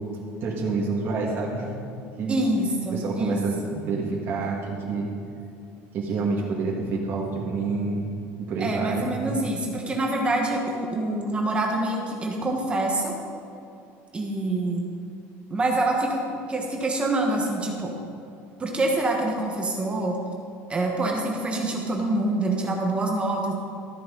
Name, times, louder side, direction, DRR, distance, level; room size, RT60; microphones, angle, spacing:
voice 1, 0.4-1.7 2.2-2.4 2.9-5.1 5.9-8.1 8.5-9.4, right 4 dB, 40° right, -4 dB, 2.0 m, -28 dB
voice 2, 2.3-3.7 8.6-13.1 14.1-14.9 15.5-17.9 18.6-20.2 20.7-23.5, right 2 dB, 20° right, 0 dB, 1.3 m, -26 dB
13.5 x 9.3 x 3.9 m, 2.6 s
cardioid pair, 140°, 6 cm